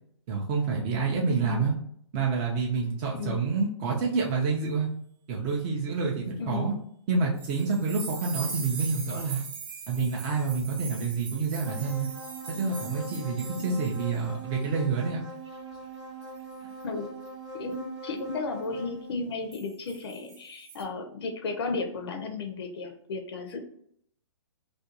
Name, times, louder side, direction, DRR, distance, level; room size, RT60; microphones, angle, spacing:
voice 1, 0.3-1.7 2.1-4.9 5.3-6.7 7.1-9.4 9.9-12.1 12.5-15.2, right 4 dB, 25° right, -2 dB, 0.4 m, -28 dB
voice 2, 6.4-6.7 13.6-13.8 16.8-17.1 17.5-23.6, left 3 dB, 55° left, 5 dB, 0.5 m, -34 dB
sound 1, 7.4-14.3 14.6-14.8 16.2-16.5 19.5-20.8, right 4 dB, 40° right, 0.8 m, -41 dB
sound 2, 11.7-19.1, right 2 dB, 75° right, 0.7 m, -41 dB
2.4 x 2.2 x 2.8 m, 0.66 s
hypercardioid pair, 140°, 16 cm